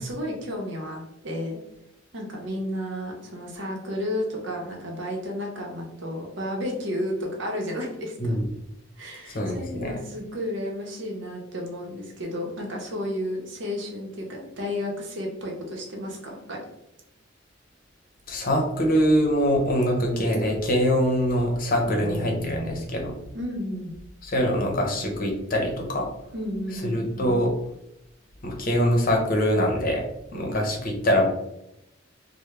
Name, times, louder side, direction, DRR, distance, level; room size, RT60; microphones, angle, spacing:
voice 1, 0.0-1.6 2.1-8.4 9.0-16.7 21.8-22.9 23.3-24.0 26.3-27.0 30.3-30.5, left 1 dB, 70° right, 0 dB, 0.8 m, -32 dB
voice 2, 9.3-9.9 18.3-23.1 24.2-26.1 26.8-27.5 28.4-30.0 30.3-31.2, equal, 45° left, 1 dB, 0.7 m, -23 dB
3.3 x 2.1 x 3.2 m, 0.83 s
head